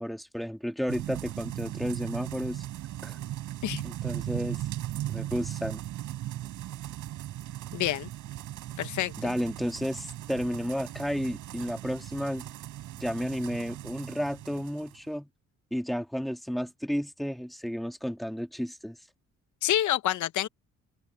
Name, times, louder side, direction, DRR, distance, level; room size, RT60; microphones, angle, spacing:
voice 1, 0.0-2.6 3.0-3.2 3.8-4.6 5.1-5.8 9.2-12.5 13.0-15.3 15.7-19.0, equal, ahead, 2.0 m, -32 dB
sound 1, 0.9-15.0, right 13 dB, 80° right, 5.5 m, -38 dB
voice 2, 7.7-8.1 8.8-9.3 19.6-20.5, left 13 dB, 75° left, 0.9 m, -28 dB
open air
cardioid pair, 90°, 30 cm